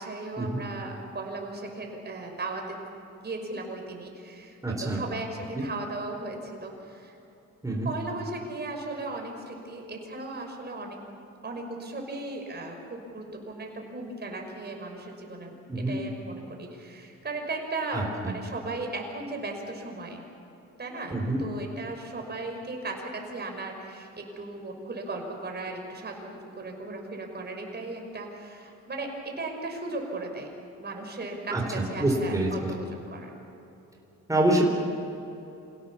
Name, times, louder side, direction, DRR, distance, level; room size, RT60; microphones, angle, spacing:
voice 1, 0.0-2.8 3.1-7.1 7.8-11.1 11.4-20.2 20.8-30.5 30.8-33.4, right 2 dB, 35° right, 2 dB, 5.7 m, -37 dB
voice 2, 4.6-5.0 5.5-5.6 7.6-7.9 15.7-15.9 17.9-18.0 21.1-21.4 31.5-32.7 34.3-34.6, right 1 dB, 10° right, 0 dB, 4.2 m, -26 dB
27.5 x 17.0 x 7.3 m, 2.9 s
cardioid pair, 90°, 30 cm